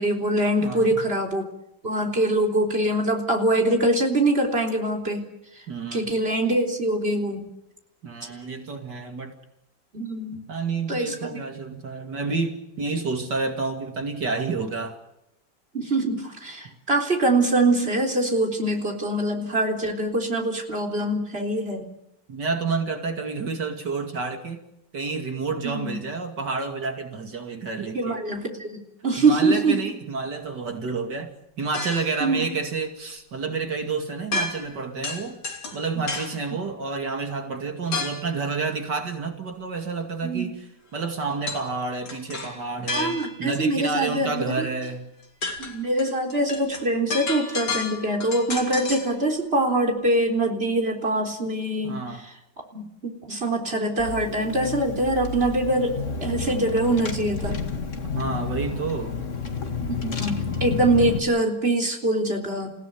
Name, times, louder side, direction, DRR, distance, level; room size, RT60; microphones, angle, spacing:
voice 1, 0.0-1.5 1.8-5.2 5.9-7.5 9.9-10.4 10.9-11.2 15.7-21.9 25.6-26.0 27.9-29.8 32.2-32.5 35.9-36.0 40.2-40.5 42.9-44.7 45.6-52.3 52.7-52.9 53.3-57.6 59.8-62.7, right 1 dB, 30° right, 2 dB, 4.1 m, -24 dB
voice 2, 0.6-1.0 5.7-6.1 8.0-9.3 10.3-15.0 22.3-24.6 24.9-28.2 29.2-35.4 35.7-40.6 40.9-45.1 51.8-52.3 58.1-59.2, right 4 dB, 65° right, 5 dB, 3.0 m, -29 dB
sound 1, 31.7-32.2 34.3-34.8 35.0-36.4 37.9-38.3 41.5-41.7 42.0-43.5 44.8-44.9 45.2-49.1, left 3 dB, 60° left, 3.5 m, -31 dB
Car / Engine, 54.0-61.2, left 5 dB, 40° left, 2.3 m, -30 dB
29.0 x 16.5 x 9.5 m, 0.84 s
omnidirectional pair, 2.0 m